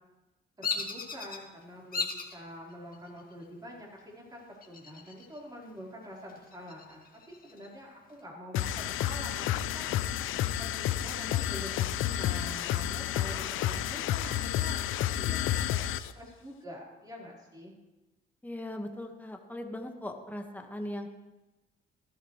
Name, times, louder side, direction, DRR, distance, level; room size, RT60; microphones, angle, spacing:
Bird vocalization bird call bird song, 0.6-1.4 1.9-2.3 2.9-3.4 4.6-5.4 5.7-5.8 6.3-7.7, left 4 dB, 45° left, 2.0 m, -36 dB
voice 1, 0.6-9.9 10.6-15.8 16.1-17.7, equal, 20° right, -4 dB, 4.4 m, -46 dB
sound 1, 8.5-16.1, left 12 dB, 85° left, 0.5 m, -30 dB
voice 2, 18.4-21.1, left 1 dB, 10° left, 3 dB, 1.6 m, -39 dB
16.0 x 13.0 x 3.3 m, 1.1 s
cardioid pair, 90°, 20 cm